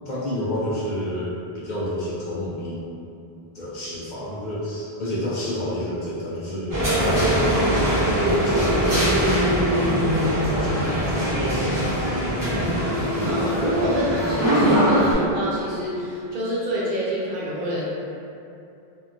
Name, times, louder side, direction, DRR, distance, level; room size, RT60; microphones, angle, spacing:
voice 1, 0.1-1.3 1.5-2.8 3.5-7.8 8.1-9.4 10.4-12.2, left 1 dB, 55° left, -7 dB, 0.6 m, -30 dB
sound 1, 6.7-15.1, equal, 20° right, 0.8 m, -21 dB
voice 2, 13.3-17.8, equal, 60° right, -7 dB, 0.7 m, -27 dB
2.8 x 2.2 x 2.5 m, 2.7 s
omnidirectional pair, 1.0 m